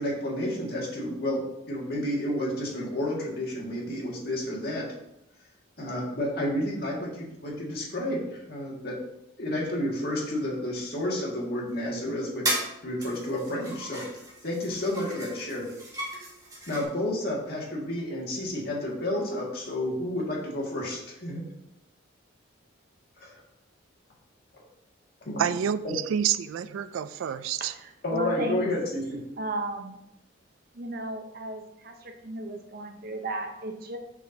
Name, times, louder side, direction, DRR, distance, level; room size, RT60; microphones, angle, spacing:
voice 1, 0.0-4.9 5.8-9.0 9.4-14.0 14.4-15.7 16.7-21.4 23.2-23.4 25.2-25.5 25.8-26.0 28.0-29.2, left 1 dB, 50° left, -4 dB, 2.0 m, -31 dB
sound 1, 12.4-12.7 13.0-16.8, right 1 dB, 20° right, 1.6 m, -35 dB
voice 2, 25.4-27.7, right 9 dB, 80° right, 15 dB, 0.3 m, -28 dB
voice 3, 27.6-28.6 29.4-30.0 30.7-34.0, right 2 dB, 45° right, 5 dB, 0.7 m, -35 dB
6.8 x 6.2 x 2.7 m, 0.85 s
head